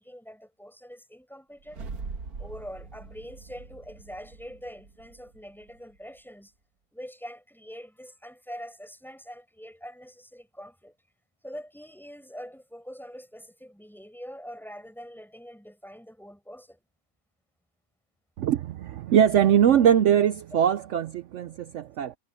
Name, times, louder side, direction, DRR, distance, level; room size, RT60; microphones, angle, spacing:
voice 1, 0.0-1.9 2.4-6.5 6.9-10.9 11.4-16.8, equal, ahead, 5.3 m, -44 dB
sound 1, 1.6-6.0, right 4 dB, 85° right, 2.2 m, -42 dB
voice 2, 18.4-22.2, right 9 dB, 65° right, 0.8 m, -22 dB
omnidirectional pair, 1.5 m